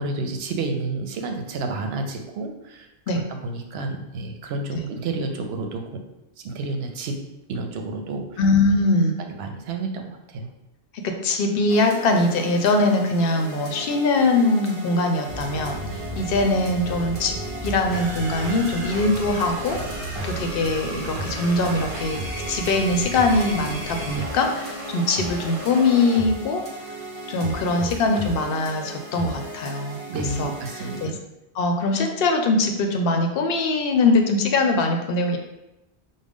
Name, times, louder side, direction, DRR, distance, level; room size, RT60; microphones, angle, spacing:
voice 1, 0.0-6.0 6.4-7.2 7.5-8.4 9.2-10.5 30.1-31.2, right 3 dB, 80° right, 4 dB, 0.8 m, -30 dB
voice 2, 8.4-9.2 11.0-17.4 17.6-26.6 27.3-30.0 30.4-31.1 31.5-35.4, left 2 dB, 70° left, 4 dB, 0.7 m, -22 dB
sound 1, 11.7-31.1, right 1 dB, 35° right, 0.7 m, -34 dB
sound 2, 15.3-24.2, equal, 10° left, 1.2 m, -36 dB
5.0 x 2.1 x 3.5 m, 0.92 s
omnidirectional pair, 1.0 m